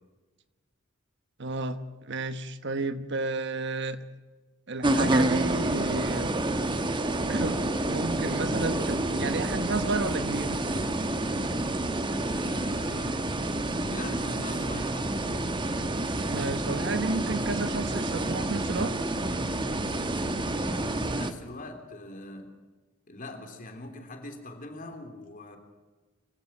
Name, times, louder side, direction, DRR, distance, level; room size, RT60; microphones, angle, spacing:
voice 1, 1.4-4.0 4.7-6.3 7.3-10.6 16.3-19.0, right 3 dB, 60° right, 11 dB, 1.2 m, -32 dB
sound 1, 4.8-21.3, right 1 dB, 25° right, 1.3 m, -29 dB
voice 2, 12.4-13.3 13.8-15.2 20.5-22.5 23.1-25.6, left 2 dB, 45° left, 5 dB, 3.4 m, -42 dB
25.0 x 16.0 x 7.5 m, 1.3 s
head